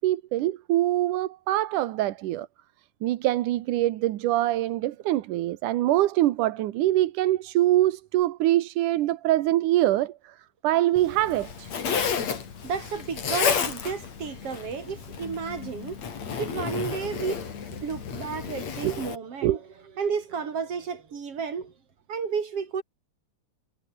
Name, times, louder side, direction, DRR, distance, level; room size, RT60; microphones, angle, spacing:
voice 1, 0.0-2.5 3.0-10.4 10.6-11.7 18.8-19.0 19.4-19.6, right 14 dB, 90° right, 2.5 m, -24 dB
Zipper (clothing), 11.0-19.2, left 6 dB, 60° left, 4.1 m, -31 dB
voice 2, 12.6-16.0 16.4-17.5 17.8-19.6 20.0-21.7 22.1-22.8, right 6 dB, 50° right, 3.8 m, -32 dB
omnidirectional pair, 3.5 m